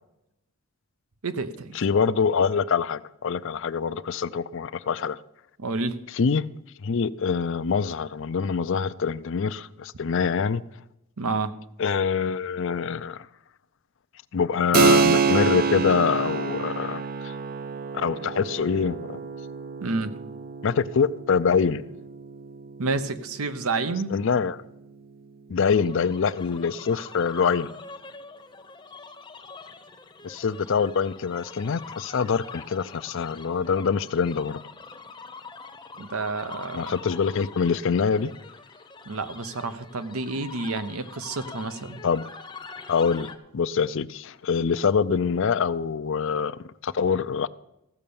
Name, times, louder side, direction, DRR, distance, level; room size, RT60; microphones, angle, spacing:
voice 1, 1.2-1.8 5.6-6.0 11.2-11.5 19.8-20.2 22.8-24.1 36.0-36.9 39.1-42.0, right 3 dB, 80° right, 0.9 m, -29 dB
voice 2, 1.7-5.2 6.1-6.5 6.8-10.6 11.8-13.3 14.3-17.3 17.9-19.2 20.6-21.8 24.1-24.6 25.5-27.7 30.2-34.6 36.7-38.3 42.0-42.2 42.9-47.5, left 6 dB, 60° left, 0.4 m, -25 dB
Keyboard (musical), 14.7-24.9, right 5 dB, 45° right, 0.5 m, -27 dB
sound 1, 25.6-43.4, left 4 dB, 20° left, 0.8 m, -44 dB
15.0 x 6.5 x 7.0 m
head